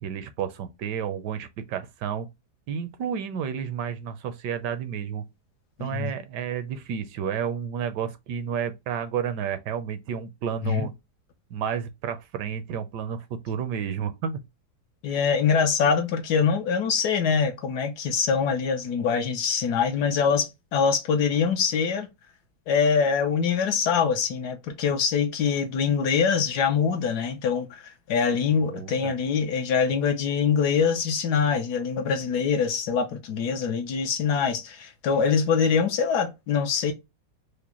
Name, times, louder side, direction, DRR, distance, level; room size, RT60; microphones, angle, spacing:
voice 1, 0.0-2.3 2.7-5.2 5.8-10.9 11.5-14.4 28.5-29.1, right 8 dB, 80° right, 1.2 m, -31 dB
voice 2, 5.8-6.1 10.6-10.9 15.0-22.1 22.7-27.8 28.1-36.9, left 6 dB, 70° left, 1.2 m, -24 dB
5.0 x 2.1 x 2.9 m
omnidirectional pair, 1.9 m